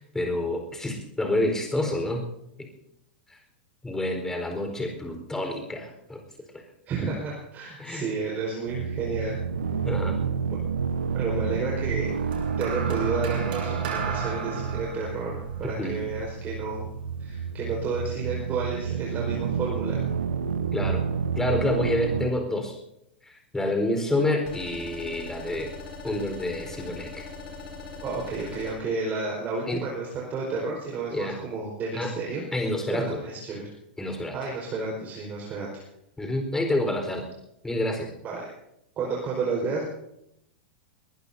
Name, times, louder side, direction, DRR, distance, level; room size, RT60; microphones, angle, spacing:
voice 1, 0.0-2.3 2.6-2.7 3.3-3.4 3.8-6.2 7.8-8.0 9.9-10.2 15.6-16.0 20.7-21.1 21.4-22.8 23.2-25.7 26.0-27.2 29.7-29.9 31.1-31.4 31.9-32.1 32.5-33.2 34.0-34.4 36.2-37.3 37.6-38.1, left 1 dB, 10° left, 4 dB, 4.4 m, -28 dB
voice 2, 6.9-9.4 11.1-12.1 12.6-16.8 17.2-20.0 28.0-32.4 32.9-33.7 34.1-35.8 38.2-38.5 39.0-39.9, right 4 dB, 30° right, -2 dB, 4.8 m, -31 dB
sound 1, 8.6-22.3, right 6 dB, 80° right, 1.0 m, -29 dB
sound 2, 12.3-16.7 17.7-17.9, right 5 dB, 60° right, 7.9 m, -35 dB
sound 3, 24.5-28.7, left 3 dB, 45° left, 7.5 m, -40 dB
22.5 x 20.0 x 2.7 m, 0.81 s
figure-of-eight pair, 95°, 6 cm